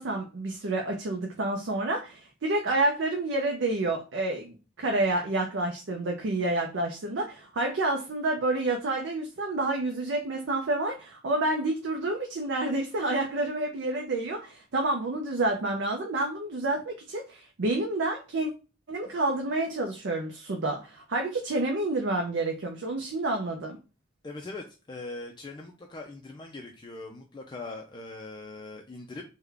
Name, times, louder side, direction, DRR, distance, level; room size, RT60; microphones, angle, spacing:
voice 1, 0.0-18.5 18.9-23.8, right 2 dB, 65° right, 2 dB, 0.5 m, -29 dB
voice 2, 24.2-29.2, left 2 dB, 25° left, 3 dB, 0.4 m, -41 dB
3.6 x 2.2 x 3.3 m, 0.32 s
head